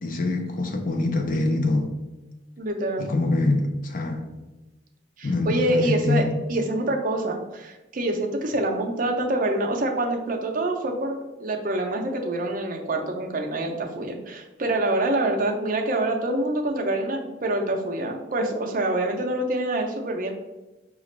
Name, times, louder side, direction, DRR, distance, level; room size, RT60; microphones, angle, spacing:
voice 1, 0.0-1.9 3.0-4.2 5.2-6.3, left 2 dB, 45° left, 0.5 m, -24 dB
voice 2, 2.6-3.1 5.2-6.2 6.5-20.3, right 1 dB, 45° right, 0.6 m, -26 dB
4.9 x 2.4 x 3.1 m
head